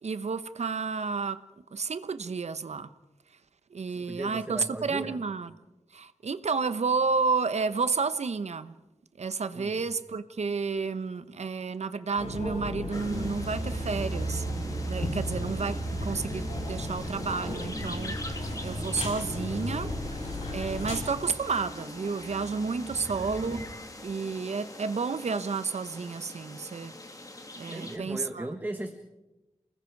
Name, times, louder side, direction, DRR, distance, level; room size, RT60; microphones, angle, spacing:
voice 1, 0.0-1.4 1.7-2.9 3.7-5.5 5.9-8.7 9.2-14.5 14.9-18.2 18.6-19.9 20.5-23.6 24.0-26.9 27.6-28.5, right 4 dB, 70° right, 1.0 m, -31 dB
voice 2, 3.9-5.2 9.5-9.8 27.7-29.0, right 1 dB, 15° right, 1.4 m, -37 dB
sound 1, 12.2-21.0, left 2 dB, 70° left, 7.9 m, -35 dB
sound 2, 12.9-28.0, left 2 dB, 30° left, 2.4 m, -44 dB
sound 3, 13.1-23.6, right 3 dB, 35° right, 5.8 m, -38 dB
29.5 x 20.0 x 4.8 m
wide cardioid pair, 100°, 12 cm